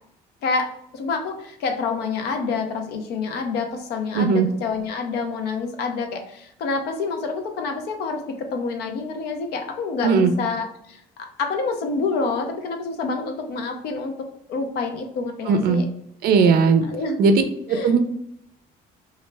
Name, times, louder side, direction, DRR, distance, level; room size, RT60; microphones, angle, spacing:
voice 1, 0.9-11.0 11.4-14.1 14.5-15.8 16.9-17.2 17.7-17.9, left 4 dB, 75° left, 4 dB, 0.6 m, -27 dB
voice 2, 4.1-4.5 10.0-10.3 15.5-15.8 16.2-16.8 17.2-17.4 17.7-18.0, right 5 dB, 65° right, 8 dB, 0.4 m, -17 dB
2.3 x 2.1 x 3.2 m, 0.75 s
cardioid pair, 110°, 17 cm